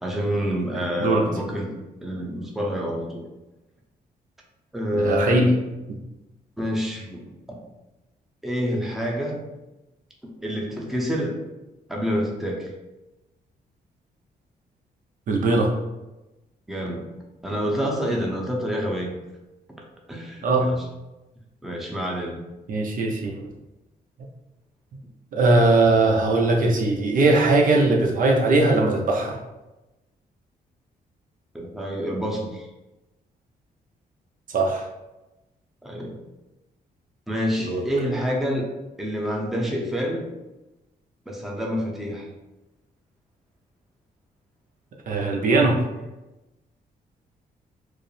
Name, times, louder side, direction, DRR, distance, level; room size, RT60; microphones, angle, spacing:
voice 1, 0.0-1.7 2.0-3.2 4.7-5.5 6.6-7.2 8.4-9.4 10.2-11.3 11.9-12.7 16.7-17.1 17.4-19.1 20.1-20.8 21.6-22.4 31.5-32.7 35.8-36.2 37.3-38.7 39.0-40.3 41.3-42.3, equal, ahead, -2 dB, 0.7 m, -27 dB
voice 2, 0.7-1.3 4.9-5.5 5.9-6.0 15.3-15.7 20.4-20.7 22.7-23.5 25.3-29.4 34.5-34.8 37.6-37.8 45.1-45.8, right 2 dB, 55° right, 0 dB, 0.7 m, -20 dB
4.8 x 2.1 x 3.2 m, 1.0 s
cardioid pair, 115°, 16 cm